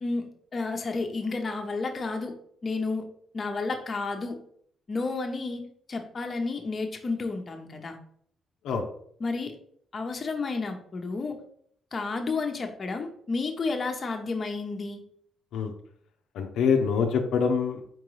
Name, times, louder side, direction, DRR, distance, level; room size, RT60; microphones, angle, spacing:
voice 1, 0.0-2.3 2.6-3.1 3.3-4.4 4.9-5.6 5.9-8.0 9.2-9.5 9.9-11.4 11.9-15.0, left 3 dB, 40° left, 3 dB, 0.8 m, -31 dB
voice 2, 16.3-17.8, left 6 dB, 80° left, 3 dB, 0.6 m, -25 dB
4.6 x 3.7 x 3.1 m, 0.63 s
cardioid pair, 90°, 0 cm